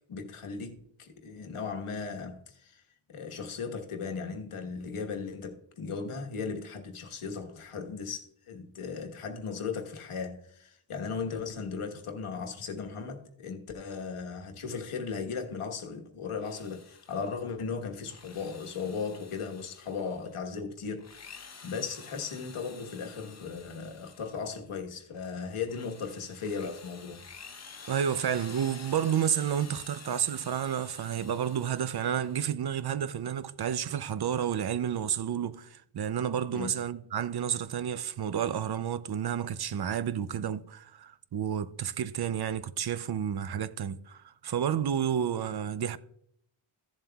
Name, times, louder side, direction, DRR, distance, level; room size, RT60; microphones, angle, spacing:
voice 1, 0.1-2.8 3.1-27.2 36.5-36.8, left 5 dB, 85° left, 1.3 m, -37 dB
Drill, 16.3-17.4 17.9-20.3 20.9-24.6 25.1-32.6, left 5 dB, 35° left, 0.7 m, -50 dB
voice 2, 27.9-46.0, right 9 dB, 50° right, 0.5 m, -31 dB
15.0 x 7.4 x 2.3 m
wide cardioid pair, 105°, 50 cm